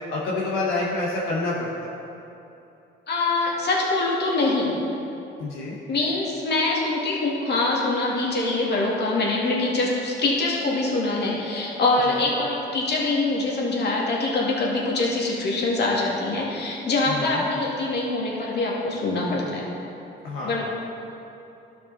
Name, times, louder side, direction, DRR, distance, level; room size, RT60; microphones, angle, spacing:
voice 1, 0.1-1.7 5.4-5.8 12.1-12.2 17.1-17.4 20.2-20.6, left 2 dB, 85° left, -5 dB, 1.1 m, -27 dB
voice 2, 3.1-4.7 5.9-19.7 20.4-20.6, left 2 dB, 55° left, -3 dB, 2.0 m, -24 dB
12.5 x 5.3 x 4.0 m, 2.9 s
cardioid pair, 90°, 20 cm